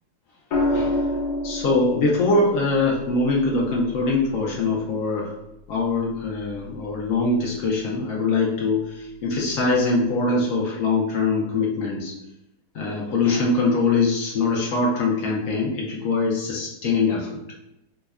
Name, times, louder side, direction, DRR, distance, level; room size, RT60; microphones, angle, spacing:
sound 1, 0.5-4.6 6.3-6.7, left 1 dB, 85° left, 1.2 m, -28 dB
voice 1, 0.7-1.1 1.4-5.3 5.7-12.1 12.7-17.3, left 3 dB, 65° left, -3 dB, 0.9 m, -23 dB
5.0 x 2.1 x 2.3 m, 0.90 s
omnidirectional pair, 1.7 m